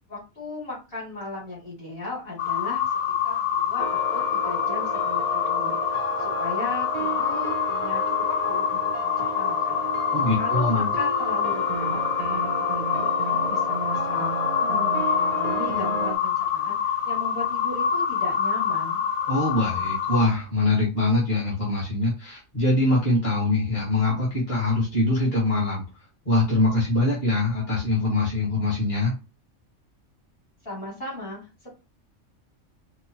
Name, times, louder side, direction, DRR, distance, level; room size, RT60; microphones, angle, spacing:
voice 1, 0.1-2.9 3.2-14.3 14.6-19.0 30.6-31.7, left 2 dB, 45° left, -5 dB, 2.5 m, -37 dB
sound 1, 2.4-20.3, left 8 dB, 85° left, 1.0 m, -26 dB
sound 2, 3.8-16.2, right 5 dB, 75° right, 0.3 m, -33 dB
voice 2, 10.1-10.9 19.3-25.8 26.2-29.1, left 2 dB, 25° left, -6 dB, 1.5 m, -23 dB
4.7 x 2.2 x 2.8 m, 0.29 s
omnidirectional pair, 1.4 m